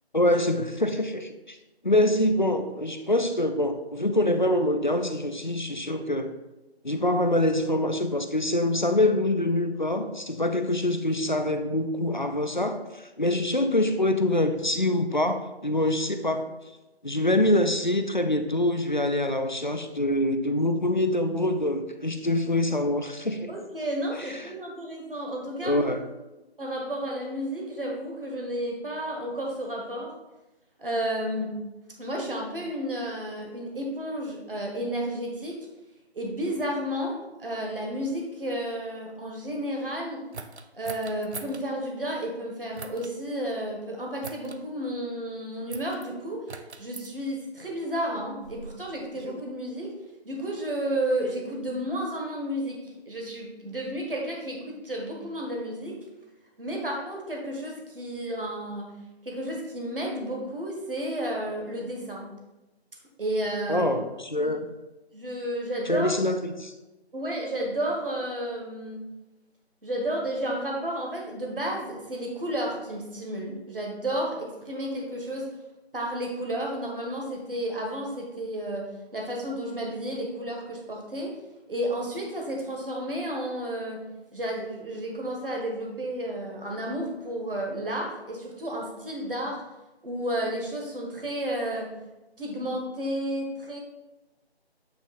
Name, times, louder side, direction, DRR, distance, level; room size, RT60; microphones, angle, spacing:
voice 1, 0.1-1.6 1.8-6.3 6.8-16.5 17.0-23.5 24.2-24.5 25.6-26.0 63.7-64.7 65.9-66.7, left 1 dB, 45° left, 7 dB, 0.4 m, -25 dB
voice 2, 23.5-25.9 26.6-30.1 30.8-31.6 32.0-35.6 36.1-40.3 40.7-46.4 46.8-50.0 50.2-52.8 53.1-56.0 56.6-58.9 59.2-62.3 63.2-63.9 64.4-64.5 65.1-66.2 67.1-69.0 69.8-75.5 75.9-78.9 79.1-81.4 81.7-84.0 84.3-89.6 90.0-91.9 92.4-93.8, right 1 dB, 55° right, 0 dB, 1.4 m, -32 dB
sound 1, 40.3-41.6 42.7-43.1 44.2-44.6 45.7-46.1 46.5-47.1 48.0-49.4, right 4 dB, 80° right, 0.6 m, -42 dB
8.3 x 2.8 x 4.2 m, 1.0 s
figure-of-eight pair, 170°, 33 cm